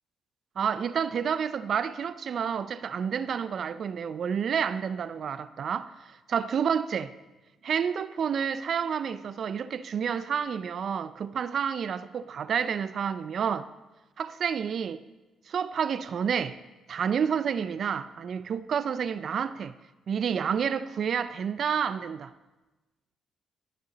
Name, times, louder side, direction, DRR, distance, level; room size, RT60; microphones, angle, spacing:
voice 1, 0.6-7.1 7.6-13.7 14.2-15.0 15.5-16.6 16.9-19.7 20.1-22.3, right 7 dB, 55° right, 0.4 m, -29 dB
15.5 x 6.8 x 4.0 m
cardioid pair, 90°, 0 cm